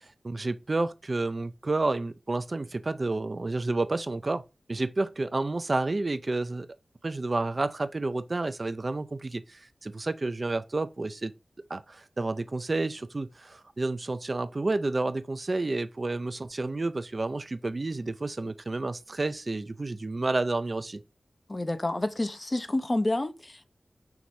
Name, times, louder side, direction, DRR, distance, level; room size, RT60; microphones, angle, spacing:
voice 1, 0.0-6.7 7.0-11.3 11.7-21.0, right 2 dB, 45° right, 0.4 m, -30 dB
voice 2, 21.5-23.7, left 2 dB, 35° left, 0.6 m, -29 dB
5.8 x 3.1 x 2.6 m
cardioid pair, 55°, 0 cm